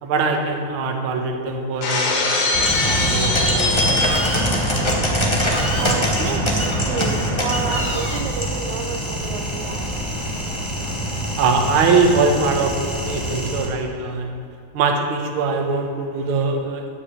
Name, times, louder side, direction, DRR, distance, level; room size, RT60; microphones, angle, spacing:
voice 1, 0.0-4.7 11.4-14.3 14.7-16.9, right 4 dB, 55° right, 3 dB, 1.6 m, -22 dB
Shatter, 1.8-4.6, left 3 dB, 90° left, 3.0 m, -22 dB
sound 1, 2.5-13.7, equal, 15° left, 0.9 m, -23 dB
voice 2, 2.5-3.3 4.4-11.4, right 7 dB, 90° right, 7 dB, 2.2 m, -32 dB
9.9 x 6.7 x 8.7 m, 2.4 s
omnidirectional pair, 3.3 m